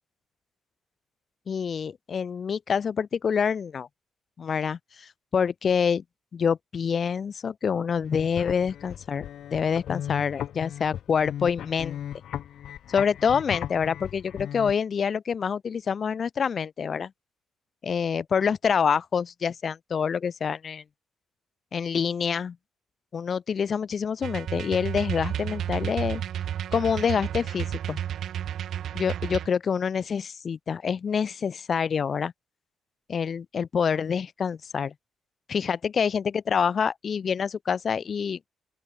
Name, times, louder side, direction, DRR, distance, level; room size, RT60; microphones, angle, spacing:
voice 1, 1.5-3.9 4.4-6.0 6.3-9.3 9.5-12.0 12.9-17.1 17.8-20.8 21.7-22.6 23.1-26.2 26.7-28.0 28.9-32.3 33.1-34.9 35.5-38.4, left 6 dB, 45° left, 2.4 m, -26 dB
sound 1, 8.0-14.7, left 10 dB, 70° left, 2.6 m, -37 dB
sound 2, 24.2-29.5, right 10 dB, 70° right, 2.6 m, -32 dB
open air
cardioid pair, 90°, 0 cm